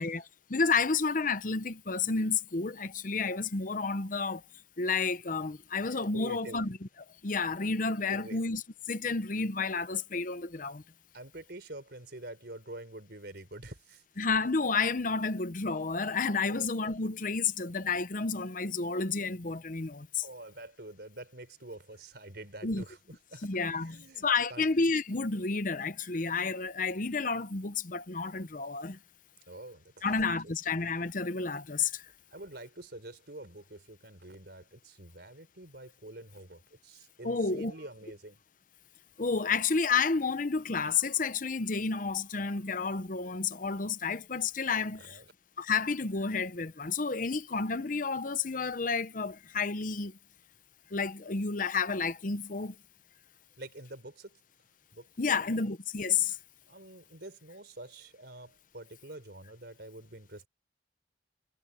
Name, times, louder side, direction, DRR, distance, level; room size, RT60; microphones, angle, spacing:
voice 1, 0.0-4.4 4.8-6.8 7.2-8.6 8.9-10.8 14.2-20.3 22.6-22.8 23.4-29.0 30.0-32.1 37.2-37.7 39.2-45.2 45.6-50.2 50.9-52.8 55.2-56.4, left 4 dB, 50° left, 0.9 m, -31 dB
voice 2, 6.1-6.6 8.1-8.4 11.1-14.0 16.5-16.7 20.2-23.5 23.7-24.7 29.5-30.5 32.3-38.4 44.9-45.3 53.6-54.4 54.9-55.6 56.7-60.5, right 1 dB, 60° right, 4.7 m, -47 dB
head